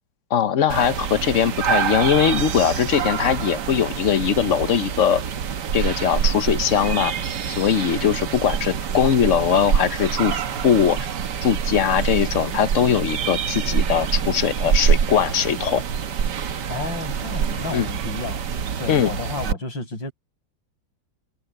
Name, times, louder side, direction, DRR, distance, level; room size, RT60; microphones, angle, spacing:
voice 1, 0.3-5.2 5.7-7.1 7.6-11.0 11.4-15.8 17.7-17.9 18.9-19.1, left 8 dB, 50° left, 1.1 m, -20 dB
sound 1, 0.7-19.5, right 7 dB, 65° right, 1.7 m, -25 dB
voice 2, 16.7-18.4 18.8-20.1, left 3 dB, 75° left, 6.8 m, -31 dB
omnidirectional pair, 2.1 m